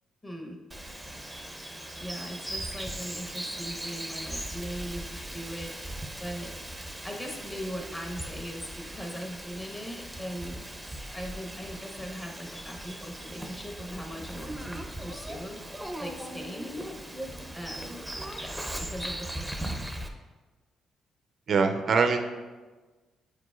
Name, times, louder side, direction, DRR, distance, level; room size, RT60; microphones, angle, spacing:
voice 1, 0.2-0.6 2.0-5.7 6.2-6.5 7.0-10.6 11.1-15.6 16.0-17.0 17.5-17.9 18.4-19.9, equal, 20° left, 0 dB, 1.1 m, -39 dB
Bird vocalization bird call bird song, 0.7-20.1, right 1 dB, 5° right, 0.6 m, -39 dB
voice 2, 21.5-22.2, right 5 dB, 55° right, 6 dB, 0.4 m, -23 dB
8.4 x 4.8 x 2.4 m, 1.3 s
cardioid pair, 90°, 0 cm